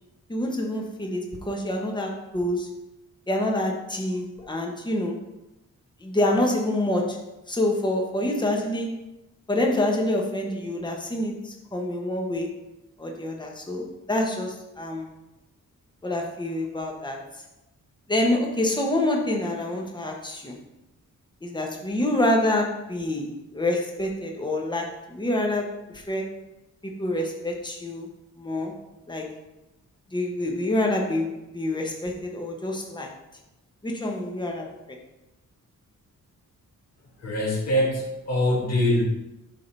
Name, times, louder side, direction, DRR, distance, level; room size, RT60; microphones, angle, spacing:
voice 1, 0.3-2.7 3.3-5.2 6.0-7.2 7.5-8.9 9.5-12.5 13.0-15.1 16.0-17.2 18.1-20.6 21.4-26.3 26.8-28.1 28.4-28.7 29.1-29.3 30.1-33.1 33.8-34.7, left 1 dB, 15° left, 1 dB, 1.2 m, -27 dB
voice 2, 37.2-39.0, left 1 dB, 50° left, -5 dB, 2.0 m, -23 dB
7.7 x 3.8 x 5.5 m, 0.95 s
wide cardioid pair, 110°, 32 cm